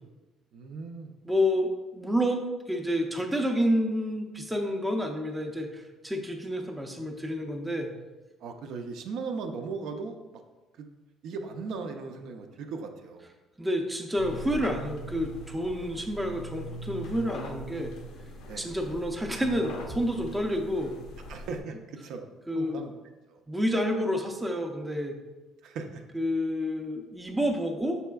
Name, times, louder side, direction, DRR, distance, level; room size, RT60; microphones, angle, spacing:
voice 1, 0.5-1.1 8.4-10.4 10.8-10.9 11.2-13.3 18.4-18.7 21.3-22.3 22.5-22.9 23.3-23.4 25.6-26.0, right 4 dB, 65° right, 5 dB, 0.4 m, -38 dB
voice 2, 1.2-7.9 13.6-17.9 18.6-20.9 22.5-22.8 23.5-25.2 26.1-28.0, equal, 5° right, 3 dB, 0.5 m, -29 dB
sound 1, 14.2-21.6, equal, 75° left, 0.5 m, -41 dB
5.4 x 4.1 x 2.3 m, 1.1 s
cardioid pair, 140°, 0 cm